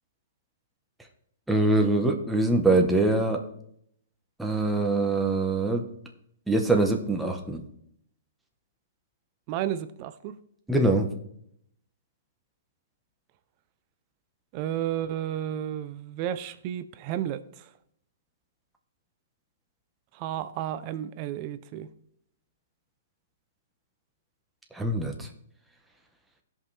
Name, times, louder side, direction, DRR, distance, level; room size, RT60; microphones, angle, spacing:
voice 1, 1.5-3.4 4.4-5.8 6.5-7.6 10.7-11.1 24.7-25.3, right 2 dB, 5° right, 1.0 m, -23 dB
voice 2, 9.5-10.4 14.5-17.4 20.1-21.9, right 11 dB, 35° right, 0.6 m, -32 dB
16.0 x 5.4 x 3.3 m
hypercardioid pair, 155°, 0 cm